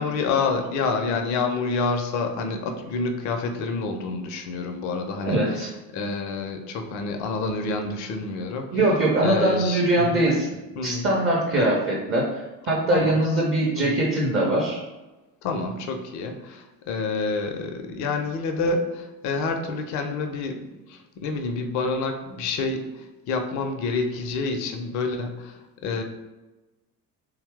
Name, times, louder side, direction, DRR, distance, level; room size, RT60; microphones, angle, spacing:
voice 1, 0.0-8.7 9.2-10.2 10.8-11.1 11.5-11.7 12.9-13.2 13.8-14.0 15.4-26.0, left 4 dB, 40° left, 5 dB, 0.4 m, -28 dB
voice 2, 5.2-5.7 8.7-10.5 10.8-14.8, right 1 dB, 25° right, -3 dB, 0.6 m, -22 dB
2.7 x 2.0 x 3.4 m, 1.1 s
figure-of-eight pair, 50°, 50 cm